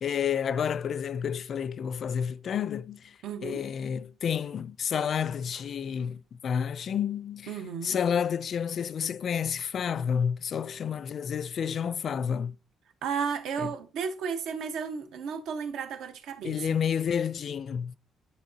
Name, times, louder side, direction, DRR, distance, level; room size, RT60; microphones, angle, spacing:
voice 1, 0.0-7.6 7.8-12.6 16.4-18.0, left 7 dB, 45° left, 0.4 m, -30 dB
voice 2, 3.2-3.6 7.5-8.0 13.0-16.8, right 6 dB, 85° right, 1.1 m, -33 dB
10.5 x 4.1 x 2.8 m
cardioid pair, 150°, 0 cm